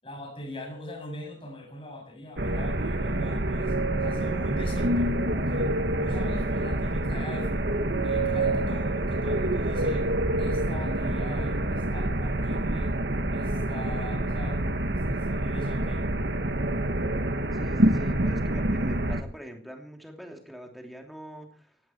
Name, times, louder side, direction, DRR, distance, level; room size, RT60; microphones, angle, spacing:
voice 1, 0.0-7.7 8.0-10.1 10.4-12.9 13.3-14.6 14.9-16.1, left 1 dB, 30° left, 3 dB, 7.4 m, -41 dB
sound 1, 2.4-19.2, right 1 dB, 65° right, 1.6 m, -27 dB
voice 2, 17.5-21.7, equal, ahead, 3 dB, 3.0 m, -43 dB
18.0 x 17.0 x 4.6 m, 0.40 s
head